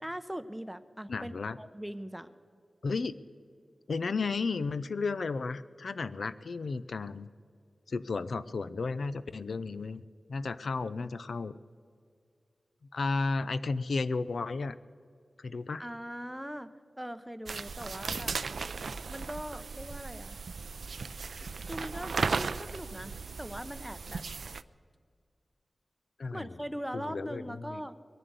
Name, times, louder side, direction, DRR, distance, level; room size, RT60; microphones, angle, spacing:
voice 1, 0.0-2.3 15.8-18.4 19.1-20.4 21.6-24.2 26.3-28.0, equal, 5° right, 12 dB, 0.7 m, -41 dB
voice 2, 1.1-1.6 2.8-3.1 3.9-7.3 7.9-10.0 10.3-11.5 12.9-14.8 15.4-15.9 26.2-26.5 26.9-27.8, left 4 dB, 80° left, 14 dB, 0.4 m, -33 dB
sound 1, 17.5-24.6, right 4 dB, 80° right, 0.4 m, -36 dB
21.5 x 7.5 x 8.1 m, 2.2 s
wide cardioid pair, 65°, 0 cm